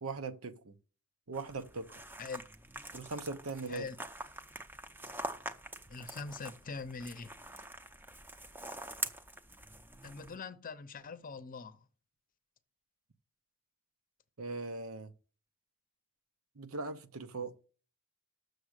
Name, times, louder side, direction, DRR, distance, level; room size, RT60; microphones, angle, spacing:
voice 1, 0.0-0.7 1.3-2.0 2.9-3.9 14.4-15.1 16.6-17.6, right 3 dB, 80° right, 0.9 m, -40 dB
sound 1, 1.3-10.3, right 1 dB, 10° right, 0.6 m, -45 dB
voice 2, 5.9-7.3 10.0-11.8, left 4 dB, 40° left, 0.7 m, -43 dB
7.3 x 6.6 x 6.6 m
head